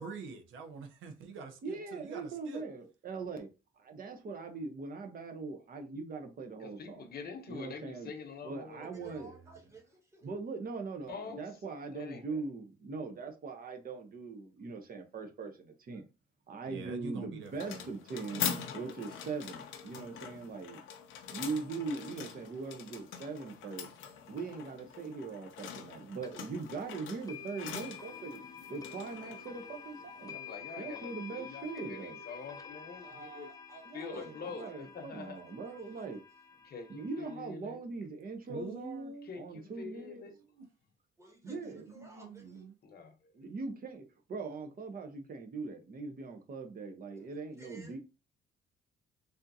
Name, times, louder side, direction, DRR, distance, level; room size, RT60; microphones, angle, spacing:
voice 1, 0.0-2.6 16.7-17.9 38.5-39.3 40.4-40.7 41.5-42.7, right 4 dB, 80° right, 0.7 m, -45 dB
voice 2, 1.6-3.5 3.8-7.1 7.5-8.1 8.4-9.3 10.2-16.1 16.5-18.5 18.7-20.8 21.3-23.9 24.3-28.4 28.7-30.4 30.8-32.2 33.9-36.2 36.9-40.3 41.4-41.8 43.3-44.0 44.3-48.0, right 4 dB, 45° right, 0.7 m, -41 dB
voice 3, 6.6-8.9 11.1-11.5 11.9-12.4 30.3-33.5 33.9-35.4 36.6-37.8 39.3-40.4 42.8-43.1, left 5 dB, 50° left, 0.8 m, -45 dB
voice 4, 8.8-10.3 33.0-36.1 41.2-42.7 47.1-47.3 47.6-48.0, right 3 dB, 15° right, 1.3 m, -54 dB
sound 1, 17.4-30.5, left 8 dB, 80° left, 0.6 m, -43 dB
sound 2, 26.2-26.3 27.3-37.3, left 6 dB, 20° left, 0.4 m, -49 dB
3.5 x 2.6 x 2.7 m
cardioid pair, 90°, 20 cm